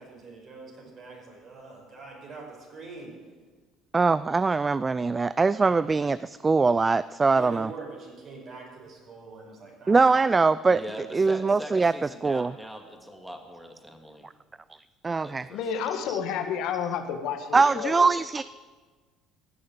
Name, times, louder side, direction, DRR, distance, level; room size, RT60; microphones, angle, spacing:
voice 1, 0.0-3.1 5.6-5.9 7.3-10.0, right 3 dB, 50° right, -1 dB, 5.3 m, -44 dB
voice 2, 3.9-7.7 9.9-10.8 11.1-11.9 12.2-12.5 15.0-15.5 16.1-16.2 17.5-18.4, right 4 dB, 25° right, 17 dB, 0.3 m, -22 dB
voice 3, 10.7-14.3 15.2-15.6, equal, 5° right, 3 dB, 2.2 m, -41 dB
voice 4, 15.5-18.0, left 7 dB, 70° left, 6 dB, 1.4 m, -30 dB
15.0 x 6.6 x 8.7 m, 1.4 s
hypercardioid pair, 70°, 0 cm